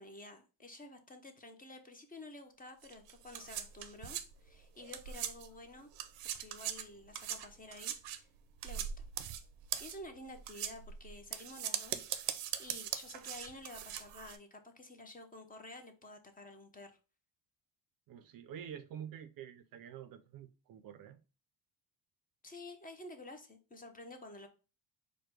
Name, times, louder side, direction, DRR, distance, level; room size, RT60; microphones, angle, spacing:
voice 1, 0.0-5.9 6.2-8.3 8.6-9.0 9.8-16.9 22.4-24.5, left 2 dB, 20° left, 0.7 m, -51 dB
sound 1, 2.8-5.6 5.9-14.4, right 10 dB, 85° right, 0.7 m, -41 dB
voice 2, 18.1-21.2, right 9 dB, 50° right, 0.5 m, -48 dB
4.7 x 2.2 x 4.6 m
cardioid pair, 115°, 44 cm